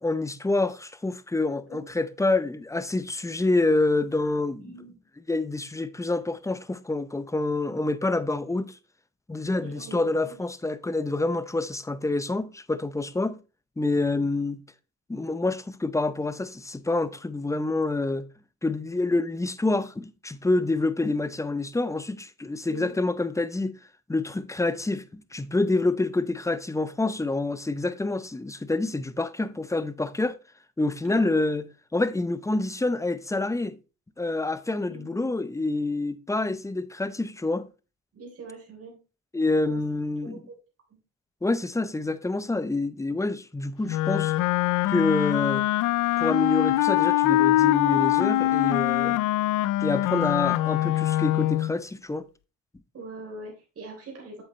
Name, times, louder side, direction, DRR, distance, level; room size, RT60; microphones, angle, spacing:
voice 1, 0.0-4.7 5.3-8.8 9.3-13.4 13.8-14.6 15.1-18.3 18.6-23.7 24.1-30.4 30.8-31.7 31.9-33.8 34.2-37.7 39.3-40.4 41.4-44.3 44.9-45.7 46.2-49.2 49.8-52.3, left 2 dB, 10° left, 0.6 m, -27 dB
voice 2, 4.6-5.0 9.6-10.4 22.7-22.9 31.0-31.3 34.9-35.1 38.2-38.9 39.7-39.8 40.2-40.4 50.1-50.2 52.9-54.4, right 3 dB, 50° right, 3.6 m, -42 dB
Wind instrument woodwind instrument, 43.9-51.7, left 15 dB, 85° left, 0.5 m, -23 dB
7.8 x 7.6 x 3.1 m
cardioid pair, 90°, 30 cm